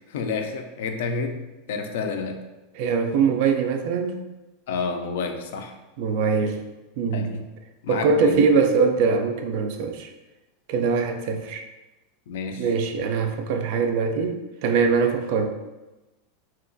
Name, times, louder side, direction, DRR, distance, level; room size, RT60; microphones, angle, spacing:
voice 1, 0.1-2.4 4.7-5.8 7.1-7.4 7.8-8.5 12.3-12.7, left 4 dB, 75° left, 6 dB, 0.3 m, -30 dB
voice 2, 2.8-4.3 6.0-6.6 7.0-7.4 7.9-10.1 10.7-11.6 12.6-15.5, right 5 dB, 60° right, 6 dB, 0.3 m, -22 dB
2.8 x 2.3 x 2.5 m, 1.1 s
supercardioid pair, 125°, 0 cm